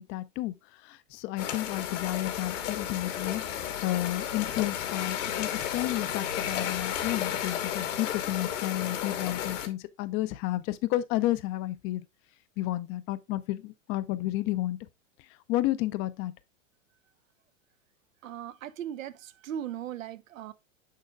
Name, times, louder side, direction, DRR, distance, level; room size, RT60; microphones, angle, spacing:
voice 1, 0.0-12.0 12.6-14.8 15.5-16.3, left 16 dB, 35° left, 0.5 m, -31 dB
sound 1, 1.4-9.7, left 10 dB, 70° left, 1.4 m, -33 dB
voice 2, 18.2-20.5, right 10 dB, 90° right, 0.6 m, -38 dB
6.5 x 6.4 x 2.3 m
hypercardioid pair, 110°, 39 cm